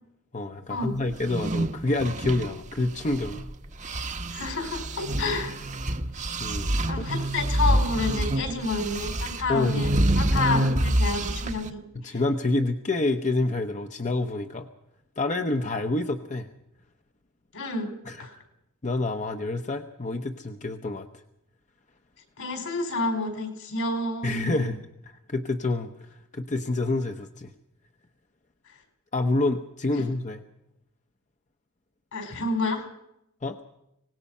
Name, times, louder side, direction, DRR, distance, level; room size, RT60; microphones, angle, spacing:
voice 1, 0.3-3.4 6.4-7.1 9.5-9.9 12.0-14.7 15.2-16.5 18.1-18.4 18.8-21.1 24.2-24.8 25.3-26.1 26.3-27.5 29.1-30.4 33.4-33.6, left 2 dB, 35° left, 6 dB, 1.0 m, -27 dB
sound 1, 1.1-3.5 3.8-11.7, right 1 dB, 35° right, 1.1 m, -27 dB
voice 2, 4.3-5.6 6.8-9.9 10.2-12.2 17.5-17.9 18.2-18.3 22.4-24.7 32.1-32.9, left 3 dB, 70° left, 6 dB, 4.9 m, -29 dB
24.5 x 19.0 x 5.5 m, 0.83 s
head